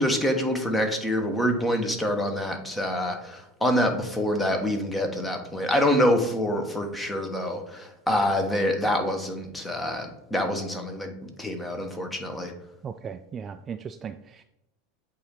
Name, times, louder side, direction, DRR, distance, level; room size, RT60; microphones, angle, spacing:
voice 1, 0.0-11.1 11.4-12.5, equal, 10° left, 4 dB, 1.2 m, -26 dB
voice 2, 12.8-14.4, right 7 dB, 30° right, 9 dB, 0.3 m, -37 dB
8.2 x 2.8 x 4.7 m, 0.84 s
hypercardioid pair, 85°, 0 cm